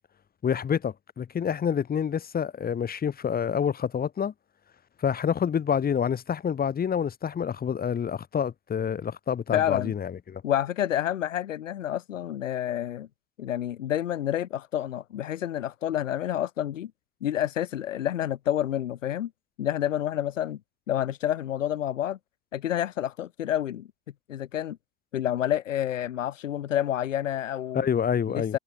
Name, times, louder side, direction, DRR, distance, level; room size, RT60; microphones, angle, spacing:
voice 1, 0.4-4.3 5.0-10.4 27.7-28.6, left 8 dB, 25° left, 3.3 m, -27 dB
voice 2, 9.5-9.9 10.4-13.1 13.4-16.9 17.2-19.3 19.6-20.6 20.9-22.2 22.5-23.9 24.3-24.8 25.1-27.8 28.3-28.6, left 11 dB, 70° left, 3.9 m, -28 dB
figure-of-eight pair, 90°, 39 cm